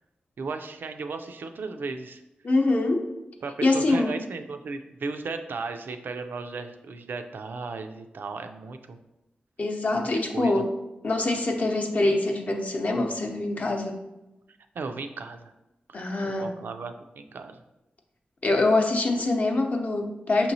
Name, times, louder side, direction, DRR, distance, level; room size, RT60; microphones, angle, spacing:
voice 1, 0.4-2.2 3.4-9.0 10.0-10.1 10.3-10.6 14.7-15.5 15.9-17.6, right 4 dB, 75° right, 7 dB, 0.3 m, -36 dB
voice 2, 2.4-3.1 3.6-4.1 9.6-10.7 11.0-14.0 15.9-16.5 18.4-20.5, left 2 dB, 45° left, 3 dB, 0.6 m, -24 dB
5.4 x 2.9 x 2.7 m, 0.95 s
wide cardioid pair, 105°, 3 cm